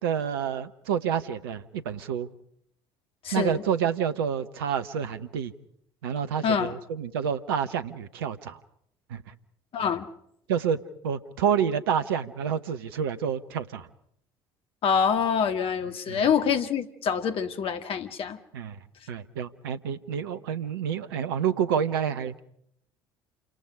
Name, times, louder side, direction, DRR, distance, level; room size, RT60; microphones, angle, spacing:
voice 1, 0.0-2.3 3.3-5.5 6.0-8.6 9.1-9.3 10.5-13.9 16.1-16.2 18.5-18.8 19.1-22.3, right 8 dB, 70° right, 10 dB, 1.0 m, -28 dB
voice 2, 3.2-3.6 6.4-6.7 9.7-10.1 14.8-18.4, left 7 dB, 45° left, 8 dB, 1.9 m, -26 dB
28.5 x 26.0 x 5.0 m, 0.71 s
figure-of-eight pair, 55°, 13 cm